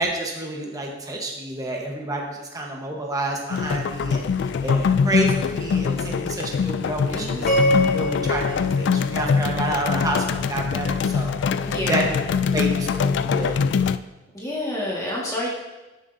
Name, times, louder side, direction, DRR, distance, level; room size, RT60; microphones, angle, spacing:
voice 1, 0.0-11.3 11.9-12.2 12.5-13.6, right 1 dB, 20° right, -1 dB, 1.2 m, -29 dB
sound 1, 3.5-14.0, left 6 dB, 65° left, 0.3 m, -23 dB
voice 2, 7.1-7.5 11.6-12.1 14.3-15.5, left 1 dB, 20° left, -6 dB, 1.7 m, -29 dB
sound 2, 7.5-9.8, left 1 dB, 50° left, 2.4 m, -25 dB
13.5 x 6.5 x 2.7 m, 1.1 s
head